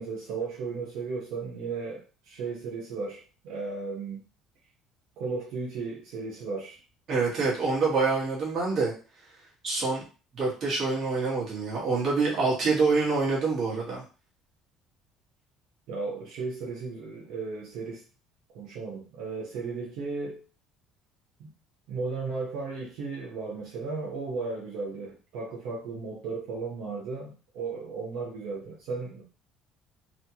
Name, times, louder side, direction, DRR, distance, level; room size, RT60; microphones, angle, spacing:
voice 1, 0.0-4.2 5.2-6.8 15.9-18.0 18.5-20.4 21.4-21.5 21.9-29.2, right 4 dB, 70° right, -3 dB, 0.9 m, -35 dB
voice 2, 7.1-8.9 9.6-10.0 10.3-14.0, right 4 dB, 40° right, -5 dB, 1.4 m, -26 dB
3.2 x 2.2 x 2.8 m, 0.35 s
cardioid pair, 155°, 0 cm